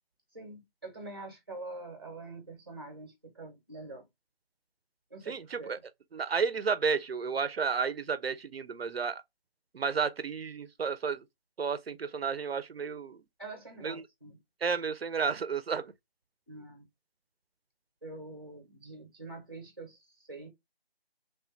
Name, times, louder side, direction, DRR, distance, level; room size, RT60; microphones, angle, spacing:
voice 1, 0.3-4.1 5.1-5.8 13.4-14.4 16.5-16.8 18.0-20.5, right 2 dB, 25° right, 0.7 m, -45 dB
voice 2, 5.3-5.8 6.1-9.2 9.7-11.2 11.6-13.2 13.8-14.0 14.6-15.9, right 5 dB, 75° right, 0.5 m, -32 dB
3.2 x 2.1 x 3.0 m
figure-of-eight pair, 170°, 31 cm